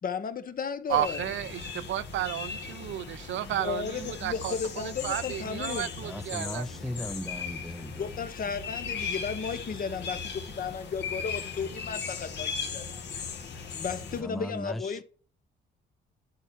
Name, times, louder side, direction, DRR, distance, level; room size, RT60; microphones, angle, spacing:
voice 1, 0.0-1.3 3.5-6.0 8.0-13.0 13.7-15.0, left 6 dB, 45° left, 1.0 m, -34 dB
sound 1, 0.9-14.2, left 5 dB, 65° left, 2.0 m, -38 dB
voice 2, 0.9-6.6 7.0-7.1, right 13 dB, 75° right, 0.5 m, -33 dB
voice 3, 6.0-8.1 14.1-15.0, left 1 dB, ahead, 0.5 m, -37 dB
11.5 x 4.4 x 4.4 m
cardioid pair, 90°, 20 cm